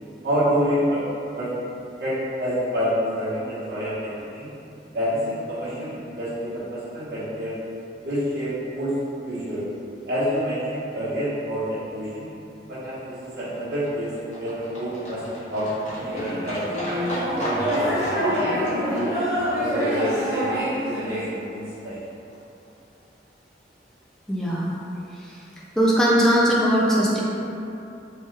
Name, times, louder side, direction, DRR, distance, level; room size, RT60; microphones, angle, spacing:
voice 1, 0.2-1.0 1.3-1.5 2.0-4.5 4.9-7.5 8.0-8.9 9.2-9.6 10.1-12.2 12.7-14.1 14.4-15.2 15.5-16.6 17.3-18.6 18.9-19.0 19.6-22.0, equal, 60° right, -11 dB, 1.1 m, -28 dB
Livestock farm animals working animals, 12.6-20.8 21.1-21.2 21.4-21.5 21.7-21.8 22.0-22.1 22.3-22.4 22.7-22.8 23.0-23.1 23.3-23.4, equal, 40° left, 0.7 m, -35 dB
sound 1, 16.0-21.3, equal, 15° right, 1.2 m, -25 dB
voice 2, 24.3-24.7 25.8-27.2, equal, 5° left, -6 dB, 0.3 m, -19 dB
3.0 x 2.2 x 3.2 m, 2.8 s
head